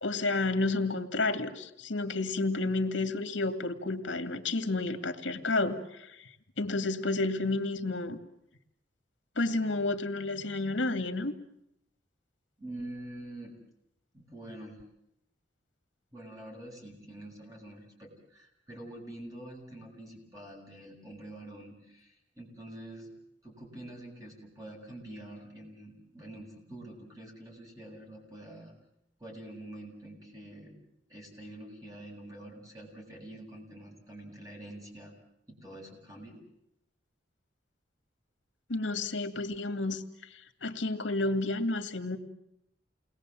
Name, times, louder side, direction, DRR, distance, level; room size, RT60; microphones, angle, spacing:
voice 1, 0.0-6.1 6.6-8.2 9.4-11.3 38.7-40.0 40.6-42.2, left 2 dB, 85° left, 7 dB, 2.3 m, -30 dB
voice 2, 12.6-13.5 14.1-14.8 16.1-23.1 23.4-28.7 29.2-30.8 31.1-35.1 35.5-36.4, right 1 dB, 20° right, -1 dB, 7.7 m, -46 dB
29.5 x 21.0 x 7.7 m, 0.82 s
head